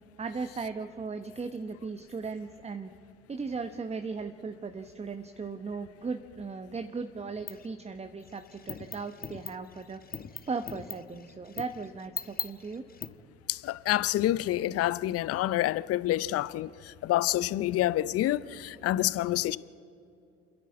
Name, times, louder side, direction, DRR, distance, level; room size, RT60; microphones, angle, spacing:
voice 1, 0.2-2.9 3.3-10.0 10.5-12.8, right 4 dB, 20° right, 1.1 m, -37 dB
sound 1, 7.5-7.7 8.2-13.1, left 6 dB, 30° left, 1.4 m, -40 dB
voice 2, 13.5-19.6, left 14 dB, 50° left, 0.7 m, -28 dB
28.0 x 11.0 x 8.7 m
hypercardioid pair, 65°, 31 cm